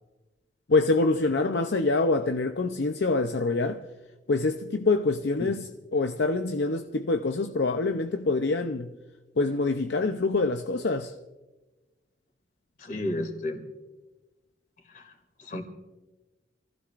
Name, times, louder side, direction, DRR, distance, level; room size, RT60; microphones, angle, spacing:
voice 1, 0.7-3.9 4.3-8.9 9.4-11.1, left 3 dB, 75° left, 0.6 m, -25 dB
voice 2, 12.8-13.6 14.9-15.0 15.4-15.6, left 1 dB, 50° left, 2.7 m, -32 dB
28.5 x 15.5 x 2.5 m
head